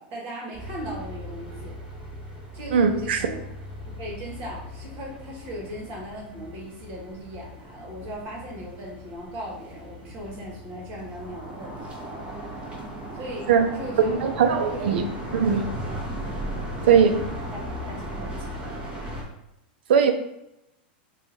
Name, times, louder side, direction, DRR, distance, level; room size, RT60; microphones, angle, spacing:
voice 1, 0.0-1.8 2.5-3.4 4.0-11.9 13.1-13.5 13.7-14.1 14.7-14.8 16.8-17.0 17.5-18.9, right 1 dB, 50° right, -4 dB, 1.2 m, -38 dB
sound 1, 0.5-19.2, equal, 20° right, 1.1 m, -37 dB
voice 2, 2.7-3.2 13.5-13.7 14.0-15.1 15.3-15.7 16.9-17.2 19.9-20.1, right 6 dB, 75° right, 7 dB, 0.5 m, -20 dB
2.7 x 2.4 x 4.2 m, 0.86 s
hypercardioid pair, 115°, 6 cm